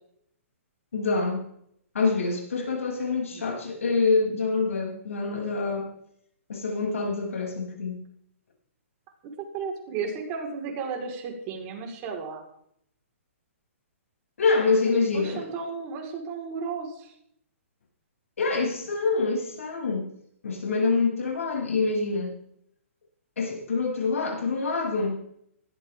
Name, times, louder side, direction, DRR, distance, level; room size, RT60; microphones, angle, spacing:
voice 1, 0.9-1.4 1.9-5.9 6.5-8.0 14.4-15.5 18.4-20.1 20.4-22.4 23.4-25.2, left 4 dB, 75° left, -1 dB, 7.8 m, -26 dB
voice 2, 9.2-12.4 14.8-17.1, right 5 dB, 30° right, 1 dB, 4.7 m, -34 dB
20.0 x 16.0 x 3.7 m, 0.69 s
hypercardioid pair, 145°, 7 cm